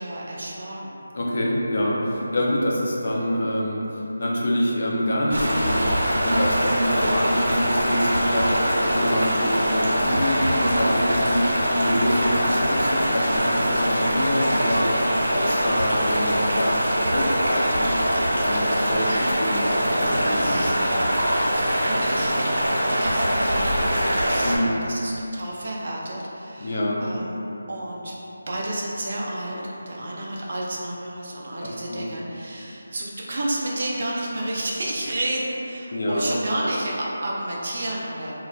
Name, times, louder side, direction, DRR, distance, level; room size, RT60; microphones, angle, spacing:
voice 1, 0.0-1.0 18.8-19.2 19.6-22.3 22.6-27.4 27.7-28.1 28.5-38.3, right 1 dB, 40° right, -4 dB, 0.3 m, -31 dB
voice 2, 1.1-15.2 15.5-16.8 17.1-17.9 18.4-20.6 24.4-24.7 26.6-27.0 31.6-32.0 35.9-36.3, equal, 40° left, -3 dB, 0.4 m, -26 dB
sound 1, 5.3-24.6, equal, 85° right, 0.7 m, -23 dB
2.2 x 2.1 x 3.8 m, 3.0 s
figure-of-eight pair, 175°, 0 cm